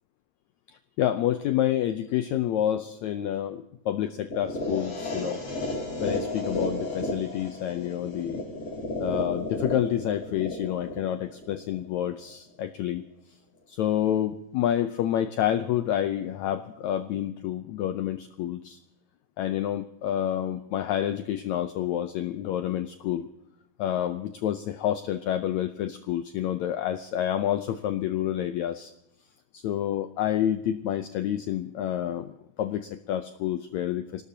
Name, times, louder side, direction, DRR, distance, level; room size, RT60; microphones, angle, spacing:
voice 1, 1.0-5.4 6.0-8.4 9.0-13.0 13.7-18.8 19.4-23.3 23.8-28.9 29.5-34.2, left 11 dB, 80° left, 10 dB, 1.6 m, -28 dB
sound 1, 4.3-12.3, left 2 dB, 40° left, 4.8 m, -33 dB
26.5 x 18.5 x 2.8 m, 0.84 s
omnidirectional pair, 4.0 m